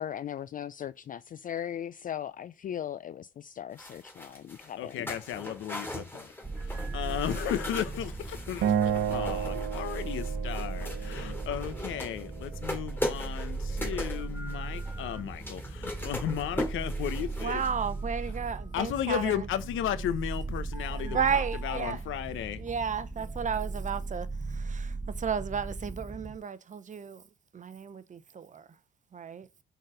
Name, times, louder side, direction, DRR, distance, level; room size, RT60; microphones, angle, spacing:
voice 1, 0.0-5.1, left 10 dB, 45° left, 0.4 m, -38 dB
sound 1, 3.8-18.1 18.3-18.4, left 1 dB, 10° left, 2.5 m, -40 dB
voice 2, 4.8-6.3 6.6-17.6 18.7-22.6, left 10 dB, 80° left, 0.9 m, -35 dB
sound 2, 6.4-26.4, right 3 dB, 10° right, 1.0 m, -37 dB
Acoustic guitar, 8.6-11.9, right 9 dB, 75° right, 1.0 m, -31 dB
voice 3, 17.4-19.5 20.9-22.0 22.6-24.3 24.5-27.2 27.5-28.6 29.1-29.5, right 7 dB, 40° right, 0.7 m, -33 dB
6.5 x 4.1 x 5.0 m
cardioid pair, 90°, 20 cm